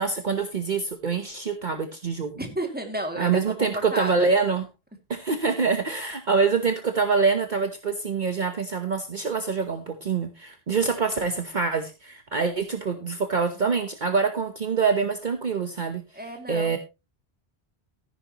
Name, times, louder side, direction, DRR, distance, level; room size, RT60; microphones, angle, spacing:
voice 1, 0.0-2.3 3.2-4.7 5.1-16.0 16.5-16.8, right 5 dB, 50° right, 7 dB, 1.1 m, -25 dB
voice 2, 2.4-4.3 16.1-16.8, right 1 dB, 10° right, 4 dB, 2.3 m, -32 dB
14.5 x 10.0 x 3.0 m, 0.27 s
omnidirectional pair, 1.1 m